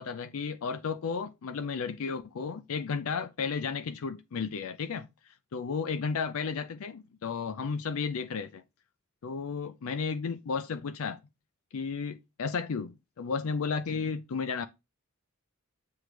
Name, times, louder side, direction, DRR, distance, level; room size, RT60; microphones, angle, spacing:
voice 1, 0.0-5.1 5.5-8.6 9.2-11.2 11.7-14.7, left 5 dB, 65° left, 0.4 m, -33 dB
7.6 x 3.2 x 4.9 m
head